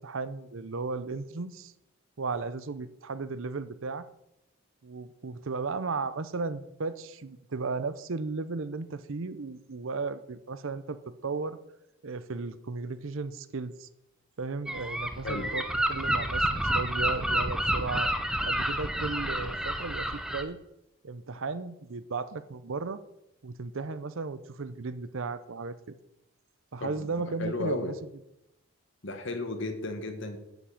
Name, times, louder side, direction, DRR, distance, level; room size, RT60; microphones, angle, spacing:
voice 1, 0.0-1.7 2.2-4.1 4.8-11.6 12.0-13.9 14.4-20.6 21.0-23.0 23.4-25.9 26.7-27.9, right 4 dB, 60° right, 13 dB, 0.6 m, -35 dB
Gull seagull, 14.7-20.4, right 1 dB, 5° right, 0.6 m, -29 dB
voice 2, 26.8-27.9 29.0-30.4, left 2 dB, 55° left, 7 dB, 1.5 m, -34 dB
9.3 x 6.0 x 8.5 m, 0.88 s
head